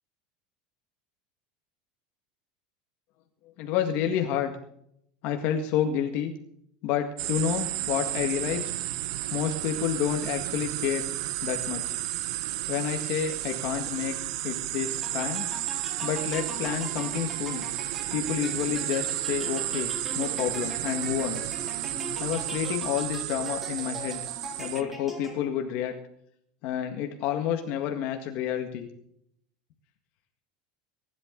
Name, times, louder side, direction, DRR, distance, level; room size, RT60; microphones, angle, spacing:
voice 1, 3.6-4.5 5.2-6.3 6.8-8.8 9.3-11.1 11.4-12.0 12.7-14.2 14.4-15.5 16.0-17.7 18.1-21.4 22.2-24.2 24.6-26.0 26.6-28.9, left 9 dB, 50° left, 4 dB, 1.9 m, -29 dB
sound 1, 7.2-24.8, right 17 dB, 70° right, 0.8 m, -32 dB
sound 2, 15.0-25.7, equal, 5° right, 4.1 m, -42 dB
23.5 x 12.0 x 3.9 m, 0.70 s
supercardioid pair, 155°, 3 cm